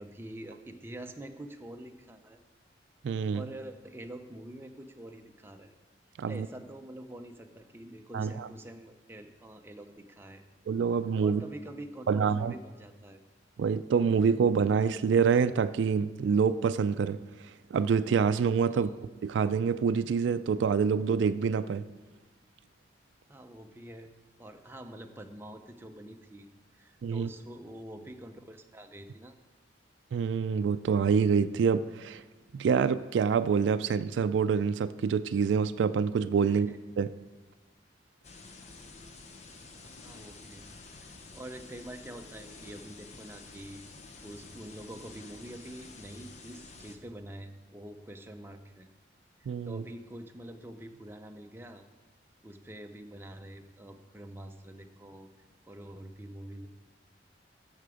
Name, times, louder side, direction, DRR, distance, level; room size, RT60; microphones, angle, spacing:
voice 1, 0.0-2.4 3.3-5.7 6.3-10.4 11.2-13.2 18.7-19.0 23.3-24.1 24.4-26.5 26.7-29.4 36.5-36.8 40.0-40.6 40.9-43.8 44.2-48.9 49.4-51.9 52.4-55.3 55.6-56.7, right 1 dB, 15° right, 5 dB, 0.6 m, -46 dB
voice 2, 3.0-3.4 6.2-6.5 8.1-8.5 10.7-11.4 12.1-12.5 13.6-17.2 17.7-18.9 19.2-21.9 27.0-27.3 30.1-32.2 32.5-36.7 37.0-37.1 49.5-49.8, right 6 dB, 80° right, 12 dB, 0.3 m, -26 dB
sound 1, 38.2-47.0, left 3 dB, 40° left, 0.8 m, -50 dB
14.5 x 6.0 x 4.9 m, 1.2 s
head